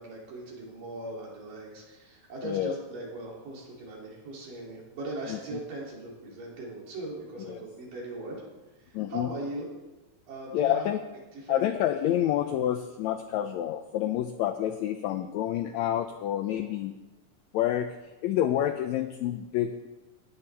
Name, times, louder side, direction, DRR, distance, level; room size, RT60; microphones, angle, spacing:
voice 1, 0.0-8.4 8.9-9.7 10.3-10.9 11.3-11.7 16.5-16.7, right 2 dB, 85° right, -3 dB, 4.5 m, -39 dB
voice 2, 2.4-2.8 5.3-5.6 7.4-7.6 8.9-9.3 10.5-11.0 11.5-16.9 17.5-17.9 18.2-19.9, left 11 dB, 85° left, 9 dB, 1.6 m, -28 dB
17.0 x 9.8 x 3.4 m, 1.1 s
omnidirectional pair, 3.8 m